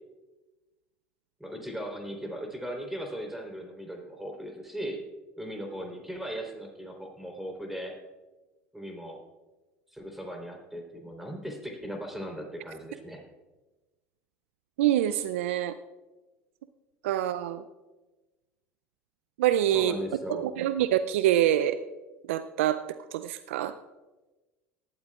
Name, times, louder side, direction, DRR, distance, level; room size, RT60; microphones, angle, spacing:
voice 1, 1.4-5.0 5.4-8.0 8.7-9.2 9.9-13.2 19.7-20.5, equal, 5° right, 2 dB, 3.6 m, -38 dB
voice 2, 14.8-15.8 17.0-17.6 19.4-20.0 20.3-21.8 22.3-22.8 23.1-23.7, right 12 dB, 75° right, 12 dB, 0.4 m, -25 dB
18.5 x 12.5 x 2.4 m, 1.2 s
hypercardioid pair, 75°, 7 cm